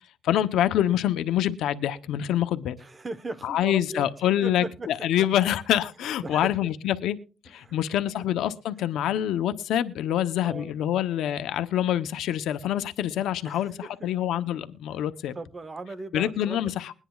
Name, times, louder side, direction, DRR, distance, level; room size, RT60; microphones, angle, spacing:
voice 1, 0.2-2.8 3.4-7.2 7.4-15.3 16.1-16.9, left 11 dB, 80° left, 0.7 m, -26 dB
voice 2, 2.8-4.1 4.4-4.9 5.2-5.3 6.0-6.7 7.6-7.8 8.2-8.3 10.4-10.7 13.4-14.1 15.3-16.7, right 2 dB, 30° right, 0.9 m, -38 dB
21.5 x 9.9 x 2.3 m
cardioid pair, 90°, 0 cm